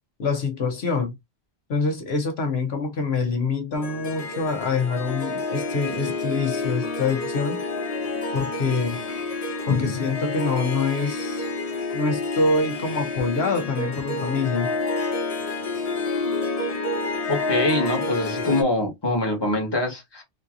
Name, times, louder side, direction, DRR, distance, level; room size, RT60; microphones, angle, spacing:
voice 1, 0.2-1.1 1.7-7.6 8.3-9.0 9.7-11.5 11.9-14.7, left 4 dB, 75° left, 1.0 m, -25 dB
Harp, 3.7-18.6, left 3 dB, 40° left, 0.7 m, -29 dB
voice 2, 17.3-20.2, left 2 dB, 25° left, 1.2 m, -24 dB
3.8 x 2.6 x 2.4 m
omnidirectional pair, 1.1 m